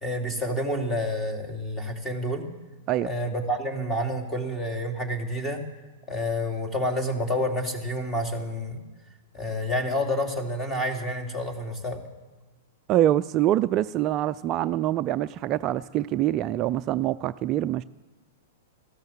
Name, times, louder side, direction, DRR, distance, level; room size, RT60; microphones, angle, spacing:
voice 1, 0.0-2.5 3.0-5.6 6.1-8.8 9.3-12.0, left 1 dB, 15° left, 3 dB, 2.9 m, -29 dB
voice 2, 12.9-17.8, right 13 dB, 35° right, 11 dB, 0.4 m, -25 dB
14.5 x 12.0 x 7.5 m, 1.2 s
hypercardioid pair, 120°, 0 cm